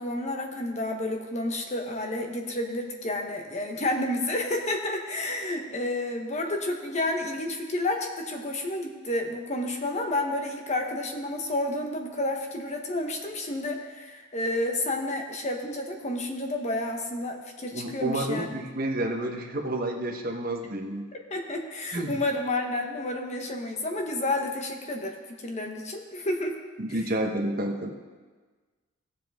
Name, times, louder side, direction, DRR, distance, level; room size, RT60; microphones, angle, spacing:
voice 1, 0.0-18.7 21.3-26.6, left 1 dB, 35° left, 3 dB, 1.0 m, -30 dB
voice 2, 17.7-21.1 21.9-22.2 26.8-27.9, right 1 dB, 45° right, 3 dB, 1.1 m, -30 dB
16.5 x 7.3 x 3.6 m, 1.4 s
head